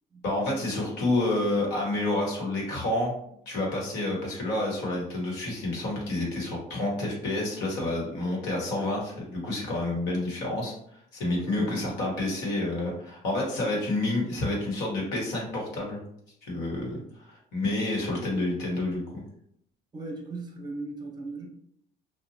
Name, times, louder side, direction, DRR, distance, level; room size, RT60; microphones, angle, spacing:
voice 1, 0.2-3.1 3.5-16.0 16.5-19.2, left 2 dB, 85° left, -3 dB, 1.0 m, -29 dB
voice 2, 11.4-11.9 18.1-18.5 19.9-21.5, right 2 dB, 25° right, 2 dB, 0.7 m, -37 dB
2.8 x 2.1 x 2.6 m, 0.71 s
cardioid pair, 110°, 17 cm